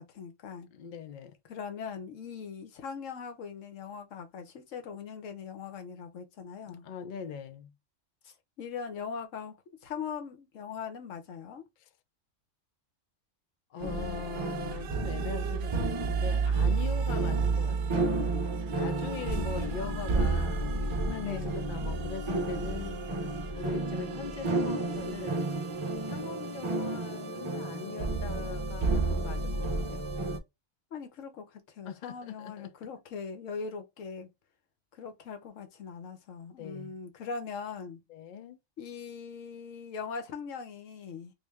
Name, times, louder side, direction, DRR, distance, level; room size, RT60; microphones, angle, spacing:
voice 1, 0.0-0.7 1.5-6.8 8.6-11.6 21.2-21.6 30.9-34.3 34.9-38.0 38.8-41.3, left 6 dB, 80° left, 1.1 m, -40 dB
voice 2, 0.7-1.3 6.7-7.7 13.7-18.2 18.8-23.1 23.6-25.4 26.0-30.1 31.8-32.7 36.6-36.9 38.1-38.6, left 7 dB, 50° left, 0.6 m, -41 dB
sound 1, 13.8-30.4, right 3 dB, 40° right, 0.5 m, -31 dB
sound 2, 13.8-27.6, right 9 dB, 70° right, 0.8 m, -46 dB
3.2 x 2.6 x 3.4 m
omnidirectional pair, 1.3 m